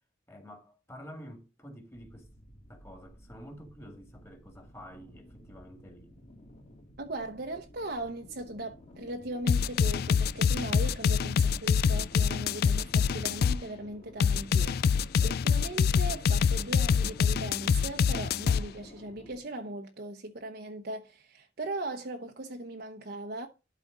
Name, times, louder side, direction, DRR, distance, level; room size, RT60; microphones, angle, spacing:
voice 1, 0.3-2.3 2.7-6.1, equal, 15° left, 2.0 m, -49 dB
sound 1, 1.9-19.4, left 1 dB, 40° left, 2.4 m, -53 dB
voice 2, 7.0-14.8 15.2-23.5, right 1 dB, 60° right, 0.9 m, -39 dB
sound 2, 9.5-13.6 14.2-18.6, left 6 dB, 55° left, 0.3 m, -25 dB
11.5 x 4.4 x 3.9 m
head